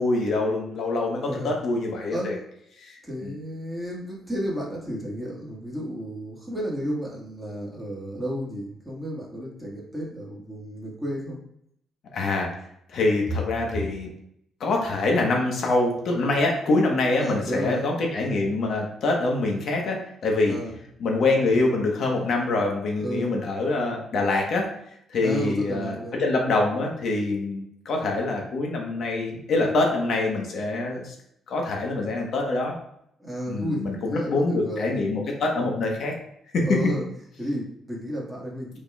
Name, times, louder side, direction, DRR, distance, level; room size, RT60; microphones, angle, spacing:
voice 1, 0.0-2.3 2.8-3.0 3.2-3.4 12.1-12.5 12.9-14.1 14.6-20.5 21.0-24.7 25.1-31.1 31.5-32.8 33.5-36.2 36.5-36.8, left 2 dB, 65° left, 0 dB, 1.1 m, -25 dB
voice 2, 3.0-11.4 17.2-17.9 20.5-20.8 23.0-23.4 25.2-26.2 33.2-35.0 36.6-37.1 37.4-38.8, equal, 5° right, -4 dB, 1.8 m, -32 dB
5.2 x 4.1 x 2.4 m, 0.74 s
cardioid pair, 90°, 0 cm